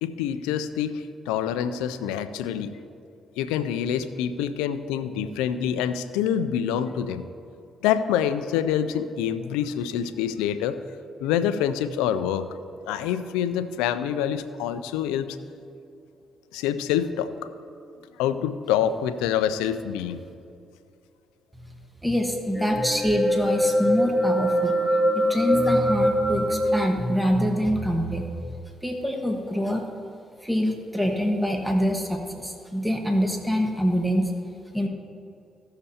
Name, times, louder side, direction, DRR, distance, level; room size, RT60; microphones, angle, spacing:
voice 1, 0.0-2.7 3.4-7.2 7.8-10.8 11.2-12.6 12.9-15.3 16.5-17.3 18.2-20.2, left 9 dB, 90° left, 11 dB, 0.4 m, -26 dB
voice 2, 22.0-24.7 25.1-28.6 28.8-29.8 30.4-34.3 34.7-34.9, equal, 5° right, 2 dB, 1.4 m, -25 dB
sound 1, 22.5-26.8, equal, 15° left, 1.3 m, -23 dB
16.5 x 6.6 x 2.8 m, 2.6 s
supercardioid pair, 50°, 0 cm